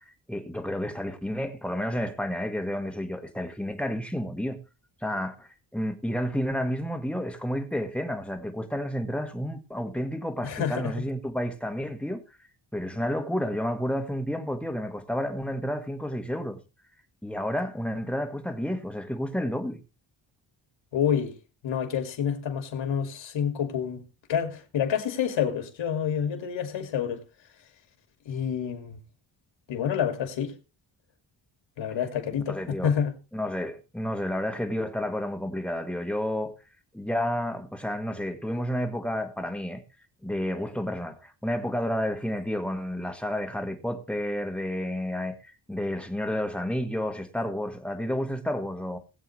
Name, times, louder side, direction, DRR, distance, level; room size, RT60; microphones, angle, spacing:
voice 1, 0.3-4.6 5.0-12.2 12.7-16.6 17.2-19.8 32.5-32.9 33.3-36.5 36.9-39.8 40.2-49.0, equal, 5° left, 1.7 m, -31 dB
voice 2, 10.4-10.9 20.9-21.4 21.6-24.0 24.3-27.2 28.3-29.0 29.7-30.5 31.8-33.1, left 8 dB, 80° left, 2.4 m, -28 dB
20.5 x 8.0 x 3.2 m
wide cardioid pair, 125°, 45 cm